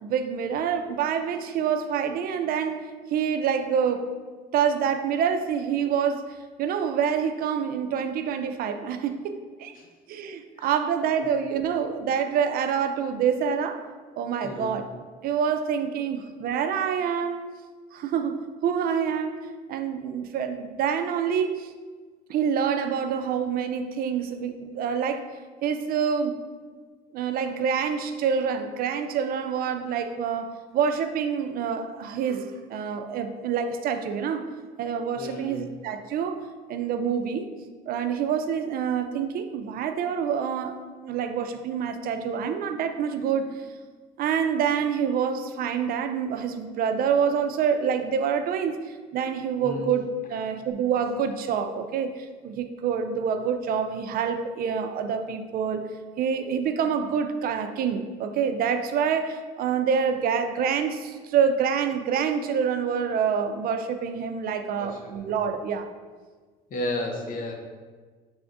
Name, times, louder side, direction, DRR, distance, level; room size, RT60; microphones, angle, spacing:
voice 1, 0.0-2.9 3.1-4.1 4.5-6.2 6.6-9.7 10.1-13.8 14.2-14.9 15.2-17.4 17.9-19.4 19.7-21.7 22.3-25.2 25.6-26.4 27.1-34.5 34.8-36.4 36.7-37.5 37.9-40.7 41.0-43.5 44.2-50.0 50.3-55.8 56.2-65.9, right 7 dB, 60° right, 8 dB, 0.4 m, -27 dB
voice 2, 14.4-14.7 35.2-35.7 49.6-49.9 64.8-65.3 66.7-67.5, left 1 dB, 55° left, 2 dB, 0.8 m, -33 dB
6.0 x 3.4 x 2.6 m, 1.4 s
cardioid pair, 110°, 17 cm